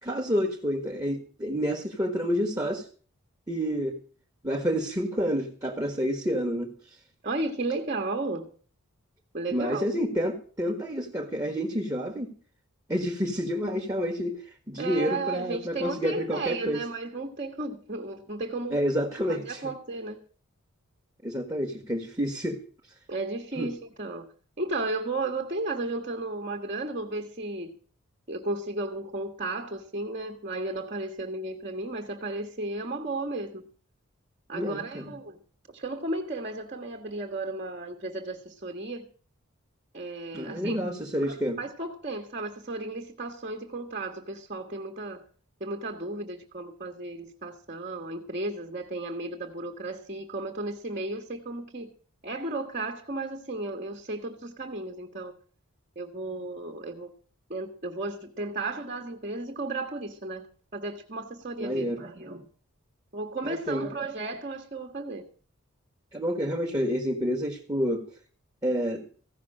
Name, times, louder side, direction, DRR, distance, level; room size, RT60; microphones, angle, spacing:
voice 1, 0.0-2.9 3.5-4.0 4.4-6.7 9.5-12.3 12.9-16.8 18.7-19.6 21.2-22.6 23.6-23.7 34.5-35.0 40.3-41.6 61.6-62.0 63.4-63.9 66.1-68.0 68.6-69.0, equal, 15° right, 1.4 m, -29 dB
voice 2, 7.2-8.5 9.3-9.8 14.8-18.8 19.3-20.2 23.1-24.3 24.6-27.7 28.3-33.7 34.5-35.4 35.7-39.1 39.9-45.2 45.6-51.9 52.2-55.3 55.9-57.1 57.5-62.5 63.1-65.2, right 2 dB, 35° right, 1.4 m, -34 dB
15.5 x 6.0 x 8.7 m
head